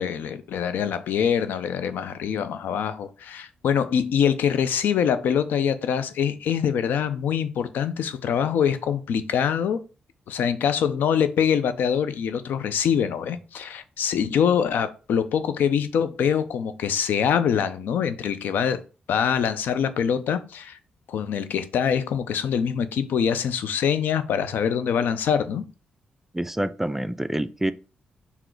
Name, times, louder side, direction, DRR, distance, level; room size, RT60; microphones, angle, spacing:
voice 1, 0.0-9.8 10.3-18.8 19.1-20.8 21.1-25.6, left 8 dB, 80° left, 0.5 m, -24 dB
voice 2, 26.3-27.7, right 1 dB, 10° right, 0.3 m, -27 dB
3.9 x 2.8 x 4.5 m
cardioid pair, 70°, 3 cm